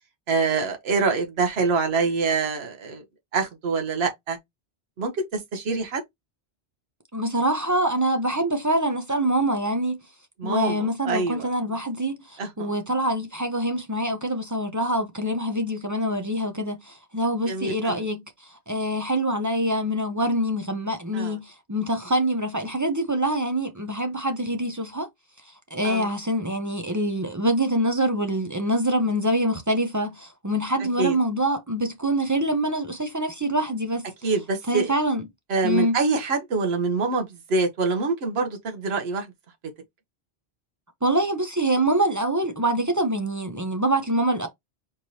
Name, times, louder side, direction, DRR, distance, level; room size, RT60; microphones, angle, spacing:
voice 1, 0.3-3.0 3.3-4.4 5.0-6.0 10.4-11.4 12.4-12.7 17.5-18.0 21.1-21.4 25.8-26.1 31.0-31.1 34.2-34.9 35.5-39.3, right 4 dB, 70° right, 1.2 m, -25 dB
voice 2, 7.1-10.0 10.4-25.1 25.7-34.1 34.7-35.2 35.6-36.0 41.0-44.5, right 1 dB, 25° right, 0.4 m, -25 dB
4.5 x 3.1 x 2.7 m
omnidirectional pair, 1.1 m